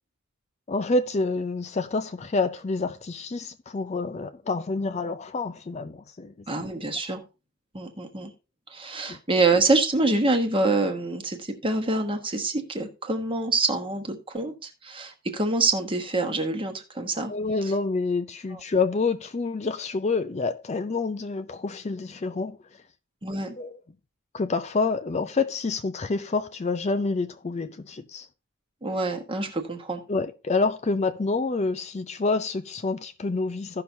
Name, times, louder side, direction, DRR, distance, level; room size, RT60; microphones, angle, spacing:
voice 1, 0.7-6.3 9.1-9.2 17.3-22.6 23.6-23.8 24.3-28.3 30.1-33.8, left 3 dB, 30° left, 0.4 m, -27 dB
voice 2, 6.5-7.2 7.7-8.3 8.7-17.3 18.5-18.6 23.2-23.6 28.8-30.0, right 3 dB, 25° right, 1.1 m, -26 dB
16.0 x 5.8 x 2.7 m
head